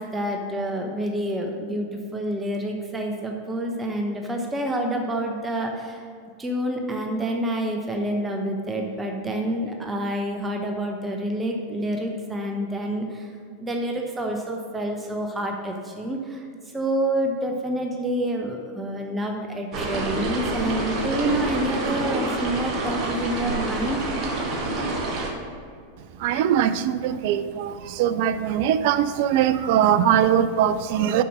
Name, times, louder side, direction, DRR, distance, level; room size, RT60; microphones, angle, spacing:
voice 1, 0.0-6.1 6.4-13.3 13.6-16.5 16.7-24.0, right 1 dB, 15° right, 2 dB, 0.8 m, -28 dB
sound 1, 19.7-25.3, right 2 dB, 30° right, 1.5 m, -27 dB
voice 2, 26.2-31.2, right 10 dB, 50° right, 12 dB, 0.4 m, -21 dB
6.9 x 6.0 x 6.2 m, 2.2 s
figure-of-eight pair, 90°, 0 cm